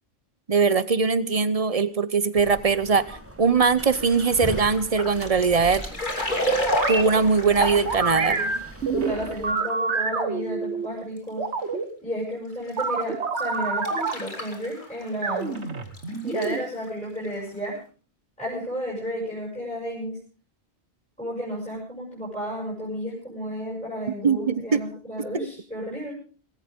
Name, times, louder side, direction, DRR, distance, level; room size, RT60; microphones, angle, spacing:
voice 1, 0.5-5.8 6.9-8.4 24.2-24.8, right 5 dB, 35° right, 15 dB, 0.8 m, -21 dB
sound 1, 2.3-9.5, right 1 dB, 10° right, 1.3 m, -40 dB
sound 2, 4.0-8.8 9.3-9.4 9.6-9.7 10.1-10.2 11.2-11.3 12.6-12.8 13.4-15.2 15.4-16.5 16.9-17.0 17.2-17.4 17.8-17.9, equal, 45° left, 3.0 m, -30 dB
sound 3, 6.7-7.0 7.7-10.9 11.4-11.8 12.8-14.1 15.2-16.6, right 4 dB, 80° right, 1.9 m, -27 dB
voice 2, 8.0-8.5 8.9-11.4 12.0-15.6 16.2-17.7 18.4-20.2 21.2-26.1, equal, 5° left, -5 dB, 7.0 m, -32 dB
19.5 x 17.0 x 3.7 m, 0.38 s
omnidirectional pair, 1.1 m